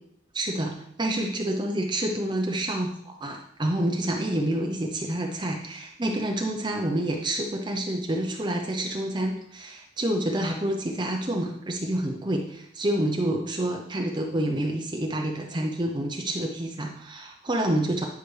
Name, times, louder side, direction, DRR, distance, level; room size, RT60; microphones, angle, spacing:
voice 1, 0.3-18.1, right 1 dB, 25° right, 1 dB, 0.7 m, -28 dB
10.5 x 5.9 x 3.3 m, 0.72 s
head